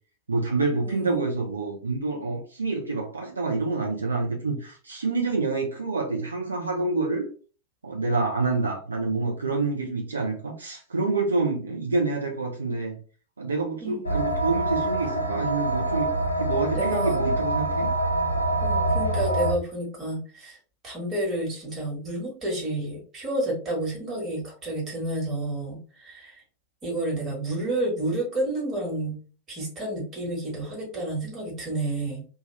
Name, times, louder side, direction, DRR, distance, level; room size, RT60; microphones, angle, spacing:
voice 1, 0.3-7.3 7.8-13.0 13.4-16.1 16.4-17.9, right 3 dB, 75° right, -1 dB, 0.5 m, -27 dB
voice 2, 0.8-1.3 13.8-14.4 16.7-17.2 18.6-20.6 20.8-26.4 26.8-29.2 29.5-32.2, right 1 dB, 25° right, -2 dB, 1.4 m, -30 dB
sound 1, 14.0-19.5, right 1 dB, 80° left, 0.5 m, -25 dB
2.8 x 2.3 x 3.0 m, 0.39 s
figure-of-eight pair, 90°, 0 cm